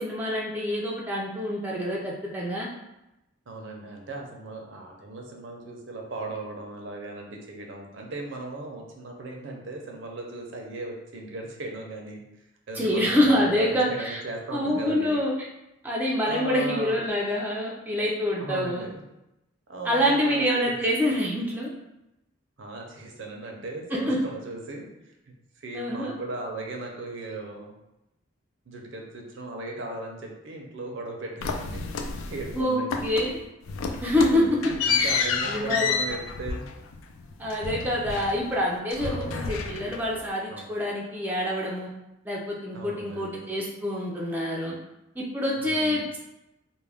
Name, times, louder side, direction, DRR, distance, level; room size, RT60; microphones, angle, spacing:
voice 1, 0.0-2.7 12.7-14.2 14.5-15.3 15.8-18.8 19.8-21.7 23.9-24.2 25.7-26.1 32.5-33.4 34.0-34.4 35.0-35.9 37.4-41.9 42.3-44.8 45.2-46.2, left 1 dB, 10° right, -4 dB, 0.3 m, -26 dB
voice 2, 3.5-12.2 12.7-15.2 16.2-17.0 18.4-19.0 19.7-20.8 22.6-24.9 25.3-27.7 28.7-31.8 32.3-32.8 34.2-34.5 34.9-36.7 39.0-39.6 40.5-40.7 42.7-43.5 45.6-46.1, right 2 dB, 65° right, 1 dB, 0.5 m, -37 dB
sound 1, 31.4-32.6 32.9-33.4 33.7-38.6 38.9-40.2, left 5 dB, 90° left, 0.3 m, -30 dB
2.3 x 2.1 x 3.3 m, 0.92 s
head